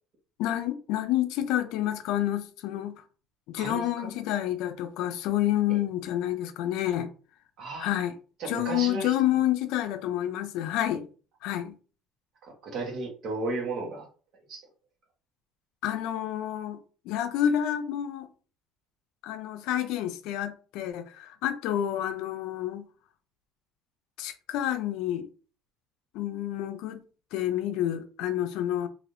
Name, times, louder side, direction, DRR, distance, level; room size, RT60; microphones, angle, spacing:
voice 1, 0.4-3.0 3.5-7.1 7.8-8.2 8.4-11.1 11.4-11.8 15.8-18.3 19.2-22.9 24.2-25.3 26.1-27.0 27.3-28.9, left 12 dB, 70° left, 0.5 m, -29 dB
voice 2, 3.5-4.1 5.7-5.8 7.6-7.9 8.4-9.1 12.4-14.1 14.5-14.7, right 3 dB, 45° right, 1.2 m, -34 dB
3.3 x 2.6 x 2.6 m
cardioid pair, 145°, 0 cm